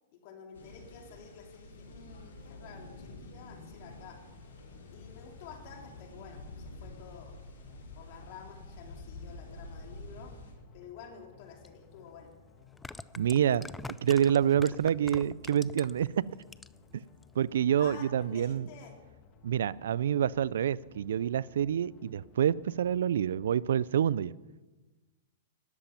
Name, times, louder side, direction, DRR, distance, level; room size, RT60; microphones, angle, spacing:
voice 1, 0.1-4.2 4.9-7.4 7.9-10.3 10.7-12.3 17.8-19.0, left 6 dB, 50° left, 2 dB, 2.5 m, -50 dB
sound 1, 0.5-10.5, left 2 dB, 80° left, 5.1 m, -48 dB
sound 2, 3.8-23.6, left 6 dB, 30° left, 1.4 m, -58 dB
sound 3, 11.6-11.7 12.6-16.1 16.4-16.9 17.2-17.3, left 2 dB, 5° left, 0.4 m, -44 dB
voice 2, 13.2-16.3 17.4-18.7 19.4-24.3, right 9 dB, 80° right, 22 dB, 0.3 m, -27 dB
13.0 x 10.0 x 5.6 m, 1.2 s
hypercardioid pair, 135°, 0 cm